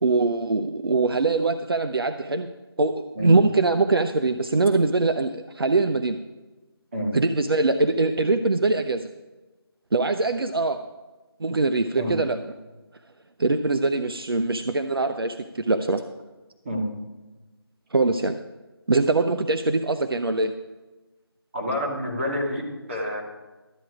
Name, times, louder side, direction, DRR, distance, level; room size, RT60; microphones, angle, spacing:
voice 1, 0.0-2.5 2.8-6.2 7.1-9.1 9.9-10.8 11.4-12.4 13.4-16.0 17.9-18.4 18.9-20.5, right 3 dB, 65° right, 8 dB, 0.6 m, -22 dB
voice 2, 21.5-23.2, equal, 30° right, -2 dB, 2.5 m, -28 dB
12.5 x 8.9 x 4.9 m, 1.2 s
figure-of-eight pair, 170°, 13 cm